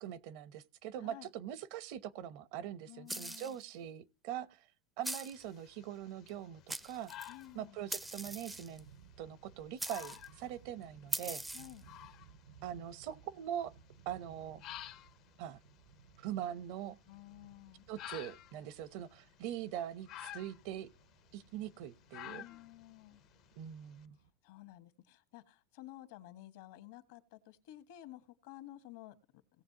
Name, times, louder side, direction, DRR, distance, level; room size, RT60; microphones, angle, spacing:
voice 1, 0.0-4.6 5.0-7.1 7.5-8.9 9.2-11.4 12.6-13.7 14.1-14.6 15.4-15.6 16.2-17.0 17.9-20.9 21.3-22.4 23.6-24.2, right 10 dB, 60° right, 0.7 m, -42 dB
voice 2, 1.0-1.3 2.9-3.6 7.3-7.8 11.5-11.8 17.1-17.9 22.2-23.2 24.4-29.1, left 15 dB, 70° left, 1.3 m, -53 dB
sound 1, 3.1-3.6 5.0-5.4 6.3-6.4 6.7-7.3 7.9-8.8 9.8-10.3 11.1-11.8, right 1 dB, 5° right, 0.4 m, -41 dB
sound 2, 5.3-24.0, left 13 dB, 45° left, 0.6 m, -54 dB
sound 3, 6.5-24.3, right 7 dB, 85° right, 2.3 m, -62 dB
18.0 x 7.1 x 2.8 m
supercardioid pair, 130°, 0 cm